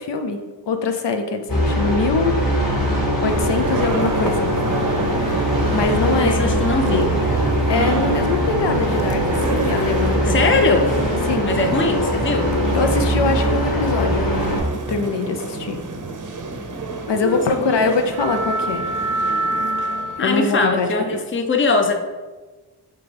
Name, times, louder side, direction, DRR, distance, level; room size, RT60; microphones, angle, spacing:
voice 1, 0.0-2.4 3.2-4.5 5.7-6.6 6.8-7.1 7.7-10.6 11.3-11.5 12.7-15.8 17.1-18.8 20.2-21.2, left 4 dB, 75° left, 5 dB, 0.7 m, -23 dB
sound 1, 1.5-14.6, equal, 55° left, 1.9 m, -22 dB
sound 2, 3.3-20.4, right 2 dB, 50° right, 0.7 m, -27 dB
voice 2, 6.2-7.1 10.3-10.9 11.4-12.5 17.2-17.9 20.2-21.9, left 3 dB, 30° left, 4 dB, 0.6 m, -21 dB
8.2 x 3.5 x 3.4 m, 1.3 s
wide cardioid pair, 115°, 42 cm